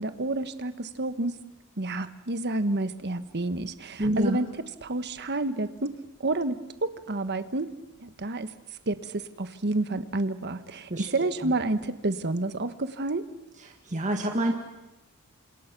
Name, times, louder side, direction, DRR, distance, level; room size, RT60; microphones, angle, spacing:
voice 1, 0.0-1.4 1.8-4.5 4.8-5.9 6.2-7.7 8.0-8.5 8.9-13.2, right 2 dB, 50° right, 11 dB, 1.3 m, -29 dB
voice 2, 4.0-4.4 10.9-11.1 11.4-11.5 13.6-14.5, right 1 dB, 35° right, 3 dB, 1.8 m, -27 dB
29.0 x 27.0 x 6.1 m, 1.0 s
head